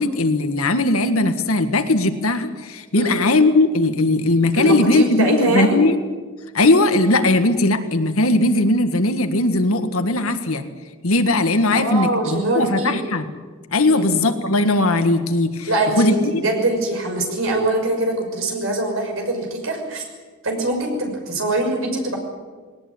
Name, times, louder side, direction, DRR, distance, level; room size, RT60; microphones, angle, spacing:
voice 1, 0.0-5.9 6.5-10.6 11.0-13.3 13.7-15.7 16.0-16.4, left 2 dB, 85° left, 8 dB, 1.8 m, -18 dB
voice 2, 4.6-5.8 11.7-13.0 13.9-14.1 15.7-20.0 20.4-22.2, right 2 dB, 65° right, 2 dB, 6.1 m, -23 dB
20.0 x 18.5 x 9.7 m, 1.4 s
head